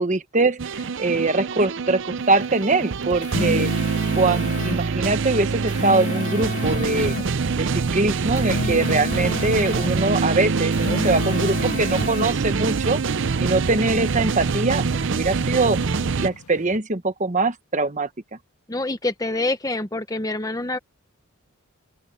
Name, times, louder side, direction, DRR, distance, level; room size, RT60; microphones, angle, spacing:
voice 1, 0.0-3.7 4.2-7.1 7.5-13.0 13.4-15.8 16.1-18.1, right 3 dB, 35° right, 1.1 m, -22 dB
sound 1, 0.6-16.3, right 4 dB, 55° right, 0.6 m, -25 dB
sound 2, 3.0-4.8 5.5-7.3 8.2-10.0 10.6-12.3, left 4 dB, 35° left, 0.3 m, -31 dB
sound 3, 10.2-16.8, left 2 dB, 90° left, 1.7 m, -48 dB
voice 2, 18.7-20.8, left 2 dB, 15° left, 0.9 m, -26 dB
head